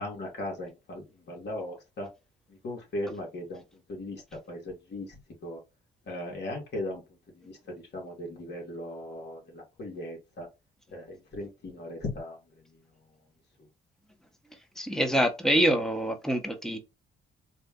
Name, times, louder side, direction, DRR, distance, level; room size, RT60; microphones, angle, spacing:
voice 1, 0.0-2.1 2.5-5.6 6.1-7.0 7.3-10.5 10.9-12.4 12.7-12.8, left 1 dB, 60° left, 2.3 m, -38 dB
voice 2, 14.8-16.8, equal, ahead, 1.0 m, -25 dB
4.1 x 2.5 x 3.7 m
cardioid pair, 90°, 20 cm